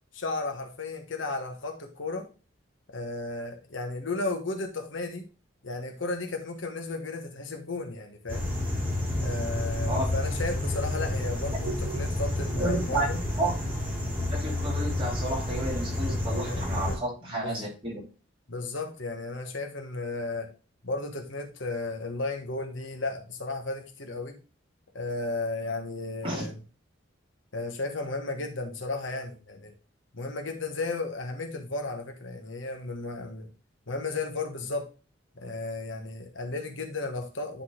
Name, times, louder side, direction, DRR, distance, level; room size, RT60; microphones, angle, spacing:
voice 1, 0.1-2.3 2.9-5.2 5.6-8.5 9.2-13.2 16.4-16.6 16.9-17.0 17.3-17.6 18.5-20.5 20.8-24.4 24.9-26.6 27.5-29.7 30.1-33.5 33.9-34.9 35.4-37.6, left 3 dB, 75° left, 4 dB, 1.3 m, -34 dB
sound 1, 8.3-17.0, left 1 dB, 10° right, 2.7 m, -30 dB
voice 2, 12.6-13.1 13.4-13.5 14.3-18.0 26.2-26.5, right 1 dB, 25° right, -3 dB, 3.0 m, -31 dB
10.5 x 4.1 x 3.7 m, 0.34 s
head